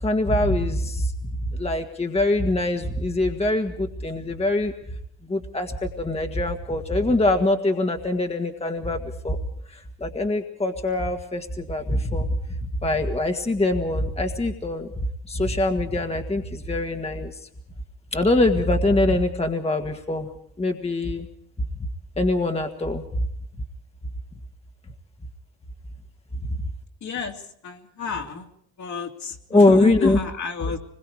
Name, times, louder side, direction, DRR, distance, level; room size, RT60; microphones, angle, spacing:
voice 1, 0.0-1.1 1.5-4.7 5.3-9.4 9.7-12.3 12.8-14.9 15.3-17.3 18.1-20.3 20.6-21.3 22.2-23.0 29.5-30.2, left 2 dB, 15° left, 4 dB, 1.8 m, -23 dB
voice 2, 27.0-27.3 27.6-28.5 28.8-30.8, left 6 dB, 50° left, 3 dB, 2.9 m, -30 dB
25.0 x 22.0 x 4.8 m, 0.70 s
cardioid pair, 90°, 36 cm